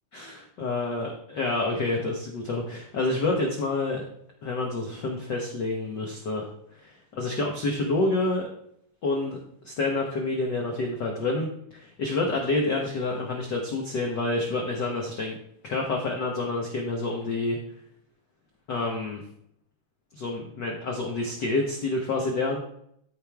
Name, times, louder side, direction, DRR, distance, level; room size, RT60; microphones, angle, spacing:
voice 1, 0.1-4.0 4.4-6.5 6.8-8.5 9.0-9.4 9.6-17.6 18.7-19.2 20.1-22.6, left 2 dB, 60° left, 0 dB, 1.2 m, -28 dB
14.0 x 5.3 x 3.5 m, 0.70 s
omnidirectional pair, 3.5 m